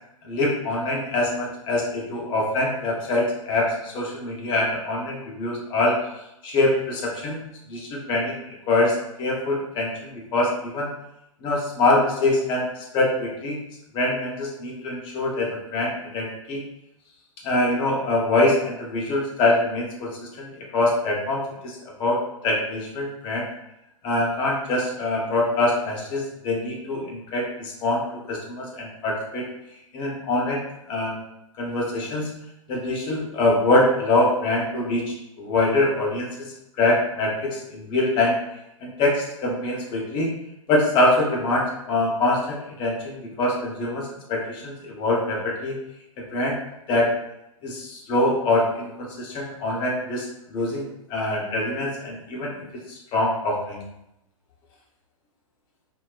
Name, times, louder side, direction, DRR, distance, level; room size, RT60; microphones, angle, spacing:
voice 1, 0.2-6.0 6.4-7.4 7.7-8.4 8.7-10.9 11.4-13.6 13.9-16.6 17.4-23.5 24.0-29.5 29.9-30.6 30.9-31.1 31.6-32.3 32.7-38.4 38.8-40.3 40.7-45.8 46.2-46.6 46.9-47.1 47.6-53.8, left 2 dB, 25° left, -2 dB, 0.7 m, -24 dB
3.8 x 2.0 x 2.4 m, 0.86 s
figure-of-eight pair, 110°, 18 cm